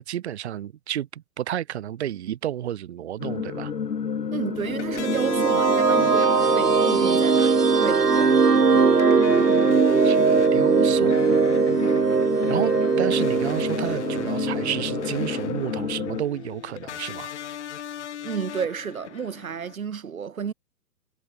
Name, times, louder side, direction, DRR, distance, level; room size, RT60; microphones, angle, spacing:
voice 1, 0.0-3.7 10.0-10.2 10.5-11.2 12.5-17.3, right 11 dB, 45° right, 2.0 m, -31 dB
sound 1, 3.2-16.2, left 6 dB, 90° left, 0.7 m, -32 dB
voice 2, 4.3-8.4 18.2-20.5, right 7 dB, 60° right, 2.1 m, -32 dB
sound 2, 4.6-19.8, left 10 dB, 45° left, 1.9 m, -39 dB
sound 3, 4.7-15.5, right 5 dB, 90° right, 1.0 m, -20 dB
figure-of-eight pair, 125°, 47 cm